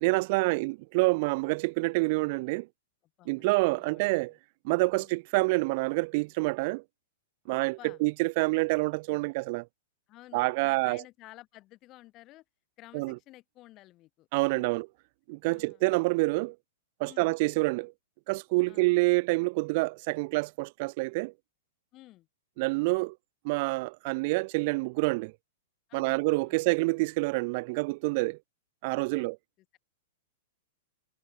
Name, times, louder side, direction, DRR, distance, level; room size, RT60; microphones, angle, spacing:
voice 1, 0.0-2.7 3.3-4.3 4.6-6.8 7.5-9.7 10.3-11.0 12.9-13.2 14.3-14.9 15.3-16.6 17.0-17.9 18.3-21.3 22.6-23.2 23.4-25.3 25.9-28.4 28.8-29.4, right 26 dB, 45° right, 0.7 m, -27 dB
voice 2, 3.2-4.4 4.9-5.1 7.5-8.0 10.1-12.4 12.8-14.3 14.6-14.7 15.5-15.8 17.0-17.4 18.7-18.9 21.9-22.3 25.9-26.7 29.2-29.3, left 17 dB, 30° left, 5.9 m, -53 dB
hypercardioid pair, 155°, 0 cm